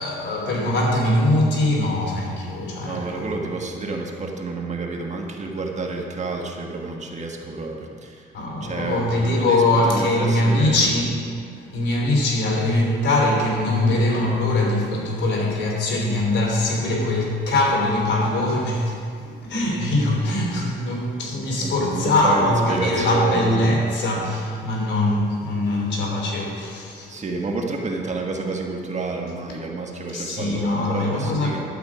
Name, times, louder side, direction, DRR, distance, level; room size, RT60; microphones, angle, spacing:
voice 1, 0.0-3.2 8.3-11.1 11.7-27.2 30.1-31.5, left 1 dB, 65° left, -2 dB, 3.2 m, -22 dB
voice 2, 2.8-8.2 8.6-10.9 21.6-23.7 27.1-31.6, right 3 dB, 35° right, 1 dB, 1.5 m, -29 dB
12.0 x 8.6 x 5.0 m, 2.3 s
cardioid pair, 90°, 20 cm